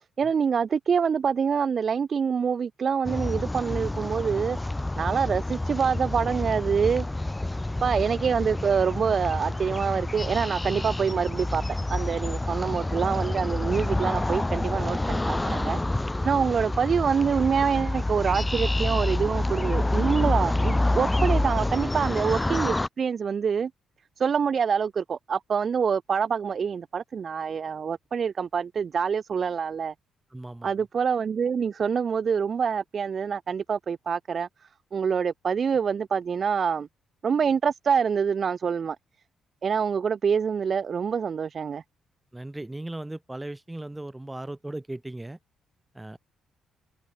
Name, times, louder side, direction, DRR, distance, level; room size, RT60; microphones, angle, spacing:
voice 1, 0.2-4.6 5.0-7.1 7.8-11.6 11.9-15.8 16.2-23.7 24.2-29.9 30.6-36.9 37.2-39.0 39.6-41.8, right 6 dB, 45° right, 0.5 m, -26 dB
sound 1, 3.0-22.9, left 2 dB, 10° left, 1.8 m, -28 dB
voice 2, 30.3-30.9 42.3-45.4 45.9-46.2, right 1 dB, 10° right, 5.8 m, -38 dB
cardioid pair, 90°, 0 cm